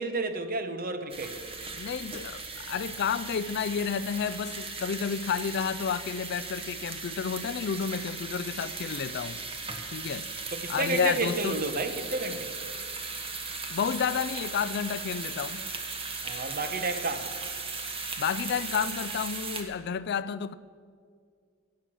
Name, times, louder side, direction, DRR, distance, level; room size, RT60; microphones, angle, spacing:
voice 1, 0.0-1.4 10.5-12.5 16.2-17.3, right 3 dB, 45° right, 1.0 m, -31 dB
sound 1, 1.1-19.6, right 4 dB, 30° right, 1.3 m, -37 dB
voice 2, 1.7-9.4 9.9-10.3 10.7-11.6 13.7-15.7 18.2-20.5, left 6 dB, 55° left, 0.4 m, -31 dB
15.0 x 9.5 x 6.2 m
head